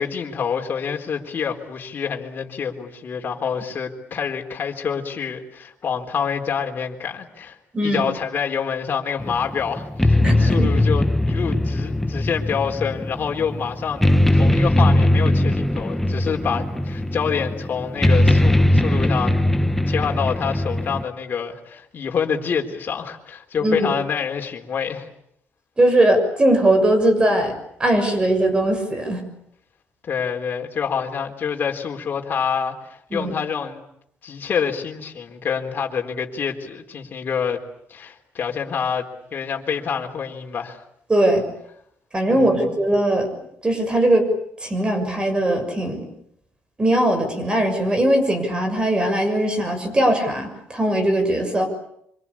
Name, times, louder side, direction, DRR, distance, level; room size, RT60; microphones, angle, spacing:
voice 1, 0.0-19.5 19.9-25.1 30.0-33.8 34.2-37.6 37.9-40.8 42.3-42.5, left 6 dB, 45° left, 2 dB, 4.0 m, -27 dB
sound 1, 9.2-21.0, left 1 dB, 5° left, 1.2 m, -19 dB
voice 2, 10.2-10.7 23.6-23.9 25.8-27.5 27.8-29.2 33.1-33.3 41.1-41.4 42.1-43.3 43.6-44.3 44.6-46.1 46.8-51.7, right 1 dB, 20° right, 6 dB, 6.8 m, -20 dB
26.0 x 25.5 x 8.7 m, 0.74 s
cardioid pair, 120°, 4 cm